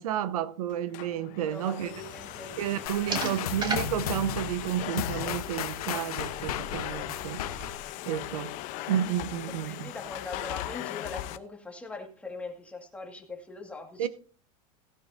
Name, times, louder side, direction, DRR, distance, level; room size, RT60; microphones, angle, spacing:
voice 1, 0.0-1.9 2.6-7.4 8.1-8.6 8.9-9.9 14.0-14.1, right 10 dB, 80° right, 0.9 m, -31 dB
Domestic sounds home sounds, 0.7-11.4, left 15 dB, 45° left, 0.8 m, -39 dB
voice 2, 1.4-3.5 9.5-14.1, left 3 dB, 5° left, 2.0 m, -41 dB
sound 1, 1.9-7.7, right 3 dB, 25° right, 2.6 m, -40 dB
sound 2, 2.9-7.9, left 10 dB, 90° left, 1.1 m, -35 dB
16.5 x 11.0 x 2.7 m
supercardioid pair, 145°, 18 cm